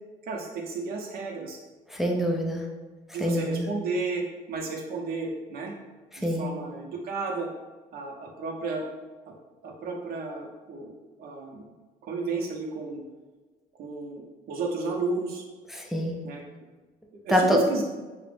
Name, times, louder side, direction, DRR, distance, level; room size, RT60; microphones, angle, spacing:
voice 1, 0.3-1.6 3.1-4.2 4.5-5.7 6.2-7.5 7.9-8.8 9.6-10.9 11.2-11.7 12.0-13.0 13.8-15.4 16.2-16.4 17.2-17.8, right 3 dB, 65° right, 0 dB, 0.6 m, -32 dB
voice 2, 1.9-2.6 3.2-3.7 6.2-6.5 15.7-16.1 17.3-17.6, equal, ahead, 0 dB, 0.3 m, -25 dB
2.4 x 2.0 x 3.2 m, 1.3 s
cardioid pair, 110°, 17 cm